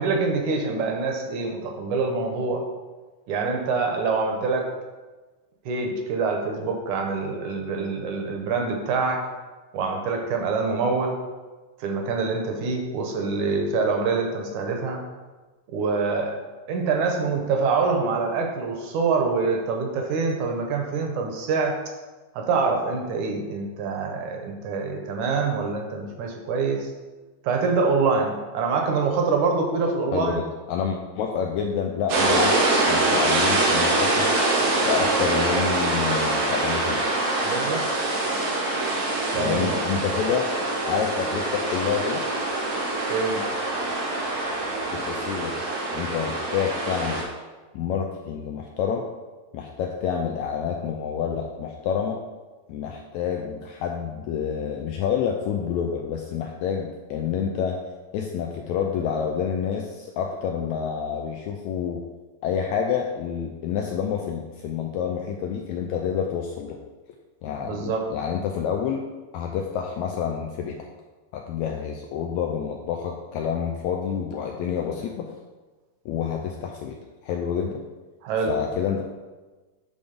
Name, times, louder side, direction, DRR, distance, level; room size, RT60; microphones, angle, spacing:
voice 1, 0.0-2.6 3.3-4.7 5.7-9.2 9.7-11.2 11.8-15.0 15.7-16.4 16.7-21.8 22.3-26.9 27.4-30.5 37.4-37.9 39.3-39.8 43.1-43.4 67.6-68.1 78.2-78.5, right 4 dB, 75° right, 2 dB, 2.1 m, -25 dB
voice 2, 30.1-34.3 34.8-37.1 39.3-40.5 40.9-42.2 44.9-45.6 45.9-47.3 47.7-49.1 49.5-52.2 52.7-57.8 58.1-62.0 62.4-66.8 67.4-69.0 69.3-70.8 71.3-75.3 76.0-77.0 77.2-77.8 78.5-79.0, left 7 dB, 85° left, 2 dB, 1.6 m, -28 dB
sound 1, 32.1-47.2, right 2 dB, 90° right, 3.1 m, -24 dB
9.7 x 3.6 x 5.2 m, 1.3 s
omnidirectional pair, 3.9 m